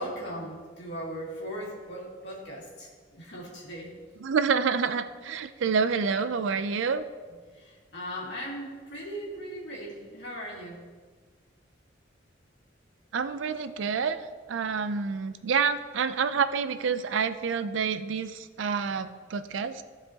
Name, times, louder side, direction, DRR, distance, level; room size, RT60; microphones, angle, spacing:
voice 1, 0.0-3.9 7.5-10.8, equal, 60° left, -5 dB, 2.2 m, -38 dB
voice 2, 4.2-7.0 13.1-14.2 14.5-19.8, right 6 dB, 70° right, 11 dB, 0.4 m, -28 dB
14.0 x 4.8 x 2.8 m, 1.5 s
head